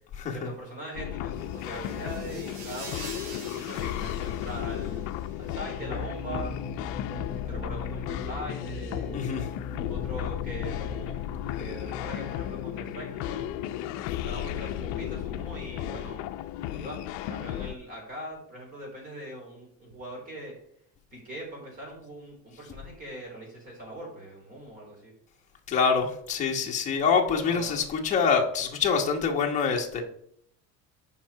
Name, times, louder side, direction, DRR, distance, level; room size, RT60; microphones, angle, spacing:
voice 1, 0.3-5.1 5.4-6.6 7.1-9.2 9.9-11.2 11.4-13.9 14.2-16.2 16.7-20.6 21.1-25.1 27.3-27.8, right 1 dB, 25° right, -1 dB, 3.4 m, -41 dB
sound 1, 0.9-17.7, left 12 dB, 60° left, 0.5 m, -34 dB
sound 2, 1.4-5.3, right 3 dB, 80° right, 3.3 m, -45 dB
sound 3, 5.8-15.4, left 3 dB, ahead, 0.5 m, -40 dB
voice 2, 9.1-9.5 25.7-30.0, left 5 dB, 25° left, 0 dB, 1.3 m, -25 dB
9.0 x 5.5 x 4.7 m, 0.66 s
cardioid pair, 180°, 31 cm